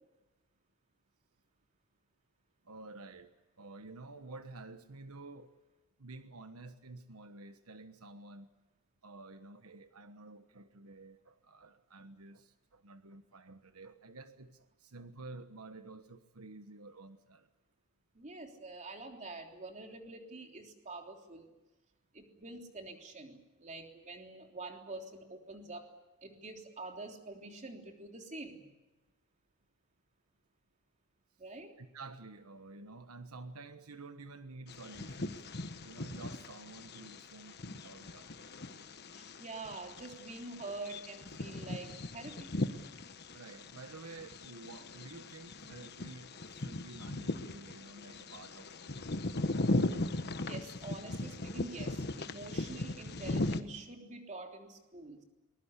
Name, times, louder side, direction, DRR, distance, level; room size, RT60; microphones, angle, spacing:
voice 1, 2.6-3.3 3.6-5.5 6.0-8.5 9.0-17.5 31.8-35.5 35.8-38.5 43.3-49.4, right 3 dB, 90° right, 9 dB, 1.3 m, -51 dB
voice 2, 18.1-21.5 22.1-25.9 26.2-28.7 31.4-31.7 39.1-42.5 50.1-55.2, right 2 dB, 35° right, 3 dB, 3.4 m, -46 dB
Bird vocalization bird call bird song, 34.7-53.6, left 2 dB, 50° left, 1.3 m, -38 dB
23.0 x 21.5 x 8.3 m, 1.1 s
head